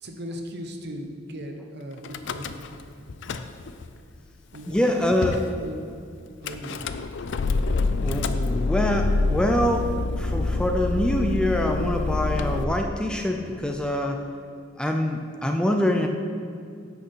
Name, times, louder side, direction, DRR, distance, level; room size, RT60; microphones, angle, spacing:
voice 1, 0.0-2.6 4.5-5.8 6.4-6.8, equal, 55° right, 4 dB, 1.0 m, -37 dB
Car / Engine starting / Idling, 2.0-2.8 3.1-3.9 4.5-4.6 4.8-4.9 5.2-5.5 6.5-12.6, left 3 dB, 65° left, 0.4 m, -26 dB
voice 2, 4.7-5.4 8.0-14.3 14.8-16.1, left 1 dB, 5° left, 3 dB, 0.4 m, -25 dB
8.4 x 6.5 x 5.6 m, 2.4 s
head